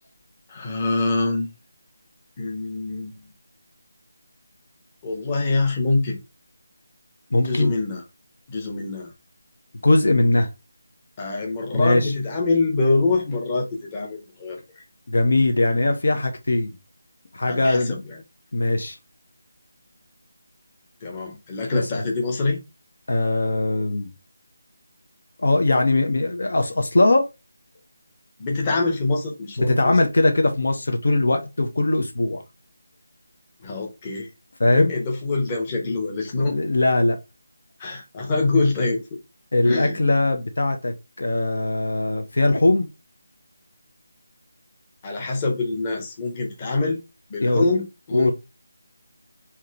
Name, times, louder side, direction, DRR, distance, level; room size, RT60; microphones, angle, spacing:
voice 1, 0.5-1.5 2.4-3.1 5.0-6.2 7.4-8.0 8.5-9.1 11.2-14.6 17.5-18.2 21.0-22.6 28.4-30.0 33.6-34.3 34.7-36.6 37.8-39.0 39.6-40.0 45.0-47.0 47.3-48.3, left 3 dB, 20° left, 1.1 m, -25 dB
voice 2, 7.3-7.7 9.8-10.5 11.7-12.1 15.1-16.7 17.3-18.0 18.5-19.0 21.7-21.9 23.1-24.1 25.4-27.3 29.6-32.4 34.6-34.9 36.4-37.2 39.5-42.9 47.4-47.7 48.1-48.3, left 2 dB, 55° left, 0.9 m, -20 dB
3.7 x 2.9 x 4.4 m
figure-of-eight pair, 160°, 0 cm